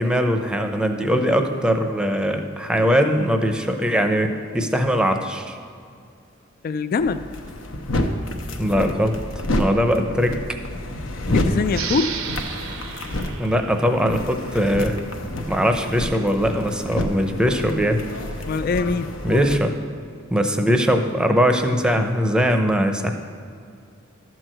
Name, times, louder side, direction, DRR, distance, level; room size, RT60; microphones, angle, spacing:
voice 1, 0.0-5.6 8.6-9.1 9.5-10.4 13.4-15.0 15.5-18.0 19.2-19.7 20.3-23.1, equal, 5° right, 5 dB, 0.7 m, -21 dB
voice 2, 6.6-7.3 11.3-12.2 18.5-19.2, left 4 dB, 45° left, 12 dB, 0.3 m, -23 dB
sound 1, 7.0-19.6, left 1 dB, 75° left, 0.9 m, -29 dB
sound 2, 11.7-15.0, right 8 dB, 75° right, 0.7 m, -34 dB
12.0 x 4.6 x 7.7 m, 2.2 s
head